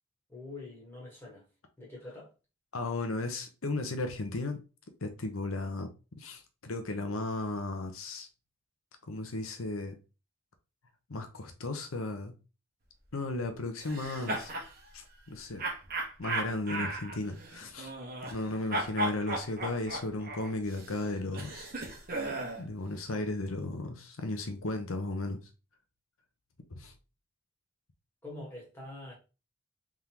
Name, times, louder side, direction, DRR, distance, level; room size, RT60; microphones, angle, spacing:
voice 1, 0.3-1.4 1.8-2.3 28.2-29.2, left 2 dB, 10° left, 1.4 m, -45 dB
voice 2, 2.7-4.6 5.0-5.9 6.2-8.3 9.1-10.0 11.1-12.3 13.1-14.5 14.9-15.6 16.2-17.9 18.3-21.7 22.6-25.4 26.7-26.9, left 2 dB, 80° left, 0.9 m, -35 dB
sound 1, 13.8-14.7 15.6-18.4 18.7-22.6, right 1 dB, 45° right, 1.1 m, -36 dB
3.7 x 3.6 x 2.9 m
head